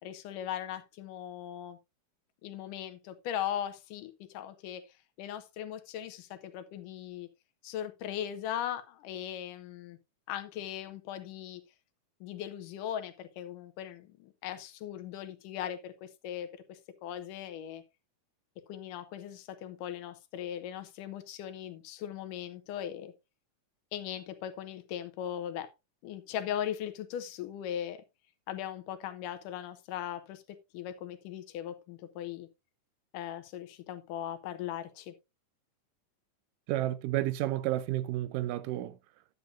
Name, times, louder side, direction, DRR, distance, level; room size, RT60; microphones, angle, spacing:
voice 1, 0.0-1.8 2.4-4.8 5.2-7.3 7.6-10.0 10.3-11.6 12.2-17.8 18.7-23.1 23.9-25.7 26.0-28.0 28.5-30.4 30.7-32.5 33.1-35.1, left 10 dB, 85° left, 2.4 m, -39 dB
voice 2, 36.7-38.9, right 15 dB, 85° right, 2.3 m, -31 dB
9.5 x 9.5 x 2.5 m
omnidirectional pair, 3.7 m